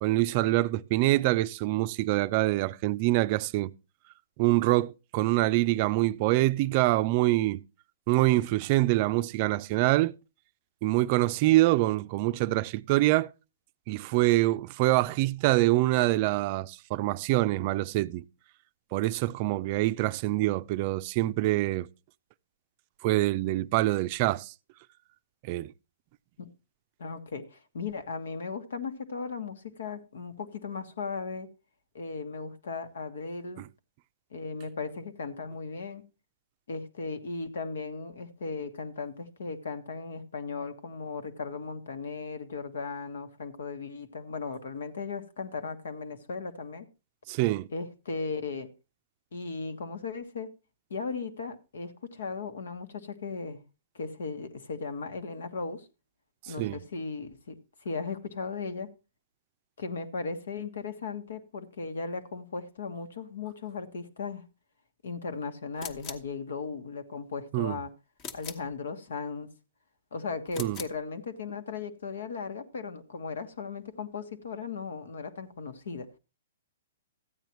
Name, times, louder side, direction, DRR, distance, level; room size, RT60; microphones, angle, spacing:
voice 1, 0.0-3.7 4.4-7.6 8.1-10.2 10.8-13.3 13.9-18.2 18.9-21.9 23.0-24.5 25.4-25.7 47.3-47.7 56.6-56.8 67.5-67.8 70.6-70.8, right 18 dB, 40° right, 0.4 m, -25 dB
voice 2, 27.0-31.5 31.9-33.6 34.3-36.0 36.7-46.9 47.7-48.7 49.3-50.5 50.9-53.6 53.9-55.9 56.5-58.9 59.8-64.4 65.0-67.9 68.3-69.5 70.1-76.1, left 4 dB, 80° left, 1.5 m, -37 dB
sound 1, 65.8-66.3 68.2-68.7 70.5-71.0, left 6 dB, 35° left, 1.2 m, -41 dB
14.0 x 9.1 x 3.1 m
hypercardioid pair, 135°, 0 cm